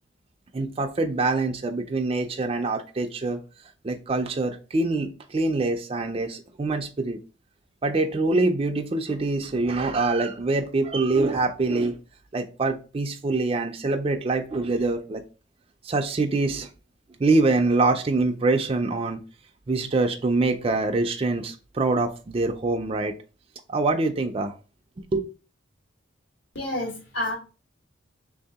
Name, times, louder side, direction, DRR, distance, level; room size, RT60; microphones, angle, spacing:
voice 1, 0.5-3.4 3.8-7.2 7.8-12.0 12.3-15.2 15.8-16.7 17.2-19.2 19.7-23.1 23.7-24.5 25.1-25.3, right 3 dB, 30° right, 0.3 m, -24 dB
voice 2, 26.5-27.4, left 1 dB, 65° left, 1.4 m, -29 dB
3.4 x 2.7 x 3.5 m
head